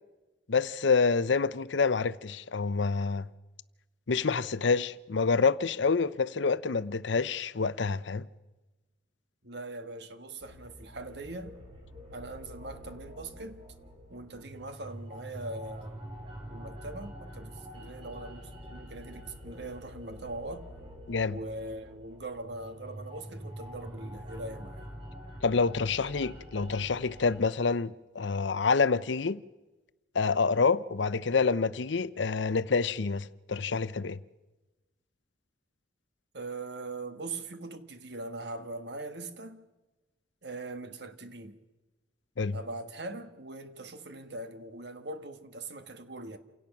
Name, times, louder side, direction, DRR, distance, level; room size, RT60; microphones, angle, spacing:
voice 1, 0.5-3.3 4.1-8.3 21.1-21.4 25.4-29.4 30.1-34.2 42.4-42.6, left 4 dB, 75° left, 0.7 m, -27 dB
voice 2, 9.4-11.6 12.1-13.6 14.1-16.0 16.5-20.7 21.3-24.9 36.3-39.7 40.4-41.6 42.5-46.4, right 2 dB, 60° right, 1.6 m, -41 dB
sound 1, 10.4-27.4, equal, 30° right, 4.1 m, -46 dB
28.5 x 17.5 x 6.0 m
head